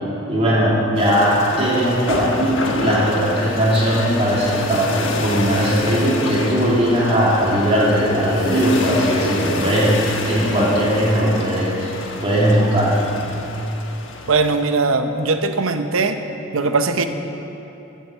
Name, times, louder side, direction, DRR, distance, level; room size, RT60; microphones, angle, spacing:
voice 1, 0.3-11.9 12.2-13.0, equal, 30° right, -6 dB, 2.7 m, -18 dB
sound 1, 0.9-14.6, left 2 dB, 60° left, 1.3 m, -28 dB
voice 2, 14.3-16.2 16.5-17.1, right 3 dB, 75° right, 8 dB, 0.8 m, -19 dB
14.0 x 7.7 x 7.9 m, 2.9 s
head